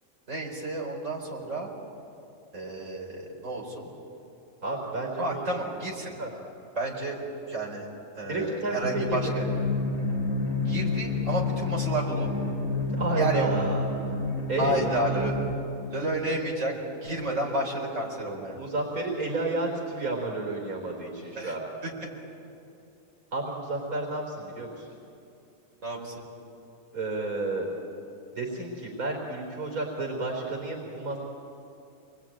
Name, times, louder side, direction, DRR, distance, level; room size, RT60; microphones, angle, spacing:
voice 1, 0.3-1.7 2.5-3.9 5.2-6.2 6.7-7.2 7.5-7.9 8.1-9.3 10.6-12.3 13.2-13.5 14.6-15.4 15.9-18.6 21.4-21.5 21.8-21.9 25.8-26.2, right 1 dB, 60° right, -2 dB, 4.9 m, -31 dB
voice 2, 4.6-5.4 6.2-6.3 8.2-9.4 12.9-13.9 14.5-15.0 18.5-21.6 23.3-24.9 26.9-27.7 28.4-31.2, right 2 dB, 85° right, 0 dB, 4.3 m, -31 dB
sound 1, 8.8-15.5, left 3 dB, 55° left, 5.3 m, -29 dB
28.0 x 21.5 x 9.1 m, 2.6 s
omnidirectional pair, 1.5 m